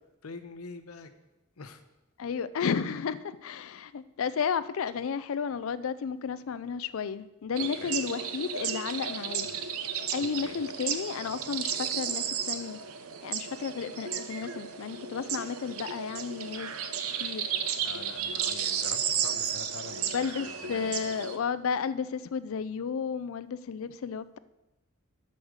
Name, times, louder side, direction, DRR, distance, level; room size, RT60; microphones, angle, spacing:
voice 1, 0.2-1.1 1.6-1.8 7.8-8.0 10.2-10.6 17.8-21.0, left 3 dB, 90° left, 10 dB, 0.8 m, -44 dB
voice 2, 2.2-9.5 10.1-12.8 13.2-16.7 17.2-17.5 20.0-24.4, left 6 dB, 65° left, 15 dB, 0.4 m, -33 dB
sound 1, 7.6-21.4, right 8 dB, 80° right, 0.8 m, -33 dB
8.5 x 6.4 x 6.4 m, 1.0 s
head